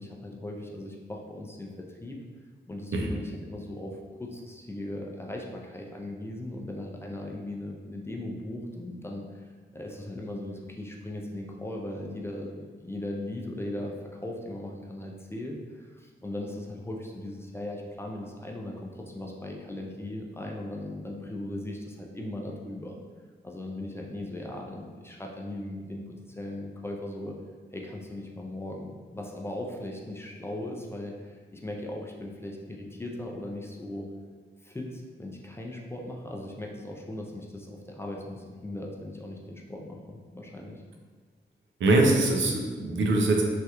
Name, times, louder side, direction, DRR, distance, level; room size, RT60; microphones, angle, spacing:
voice 1, 0.0-2.2 2.7-9.5 9.7-23.0 23.4-27.4 27.7-34.1 34.6-40.8, left 1 dB, 15° left, -1 dB, 0.3 m, -38 dB
voice 2, 41.8-43.4, right 2 dB, 85° right, 1 dB, 0.5 m, -23 dB
3.2 x 2.3 x 2.8 m, 1.5 s
wide cardioid pair, 110°, 19 cm